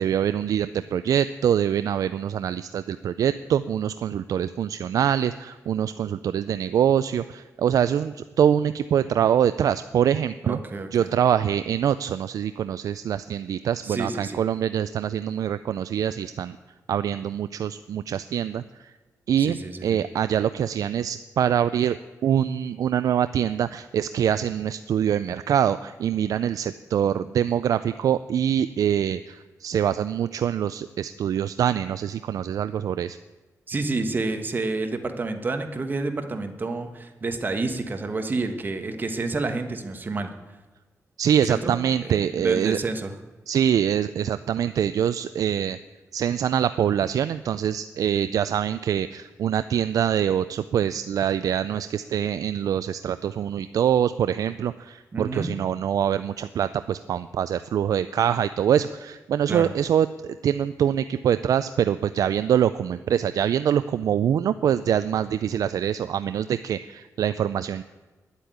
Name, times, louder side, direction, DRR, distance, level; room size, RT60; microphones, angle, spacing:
voice 1, 0.0-10.6 10.9-16.6 16.9-18.9 19.3-19.6 19.8-22.0 22.2-33.2 41.2-42.8 43.5-45.8 46.1-67.8, right 9 dB, 80° right, 13 dB, 0.4 m, -24 dB
voice 2, 10.4-11.1 13.8-14.4 19.4-20.0 33.7-40.3 41.4-41.7 42.0-43.1 55.1-55.5 59.5-59.7, right 3 dB, 35° right, 7 dB, 1.3 m, -29 dB
10.5 x 8.3 x 9.3 m, 1.3 s
wide cardioid pair, 135°, 6 cm